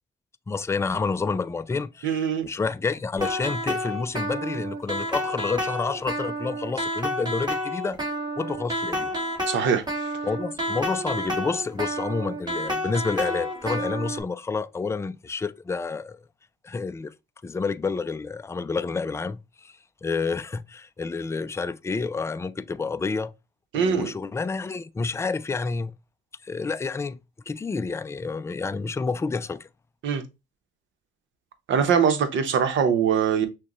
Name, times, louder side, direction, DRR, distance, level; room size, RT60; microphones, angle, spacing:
voice 1, 0.5-8.0 8.4-9.2 10.2-16.2 16.6-17.1 17.4-19.7 20.0-23.3 23.7-25.9 26.4-27.2 27.5-29.7, left 4 dB, 15° left, 0.3 m, -29 dB
voice 2, 2.0-2.5 9.5-9.8 23.7-24.1 30.0-30.2 31.7-33.5, right 7 dB, 75° right, 0.9 m, -22 dB
sound 1, 3.2-14.2, equal, 20° right, 1.8 m, -30 dB
6.2 x 2.3 x 3.0 m
cardioid pair, 90°, 20 cm